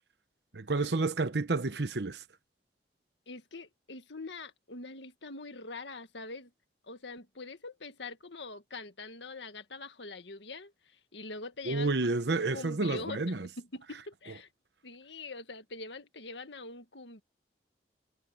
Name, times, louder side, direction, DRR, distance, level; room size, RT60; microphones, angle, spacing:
voice 1, 0.5-2.2 11.7-13.5, right 3 dB, 75° right, 1.0 m, -30 dB
voice 2, 3.3-6.5 6.8-12.1 12.5-14.5 14.8-17.2, left 3 dB, 85° left, 1.8 m, -44 dB
head